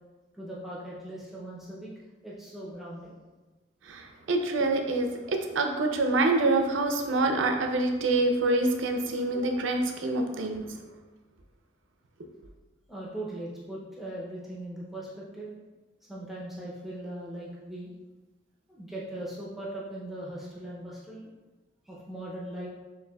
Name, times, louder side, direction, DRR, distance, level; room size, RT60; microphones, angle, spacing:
voice 1, 0.3-1.9 2.2-3.1 12.9-15.5 16.1-17.9 18.7-21.3 21.9-22.7, right 1 dB, ahead, -6 dB, 0.5 m, -39 dB
voice 2, 3.9-10.7, right 2 dB, 70° right, 4 dB, 0.5 m, -26 dB
6.5 x 2.6 x 2.2 m, 1.2 s
head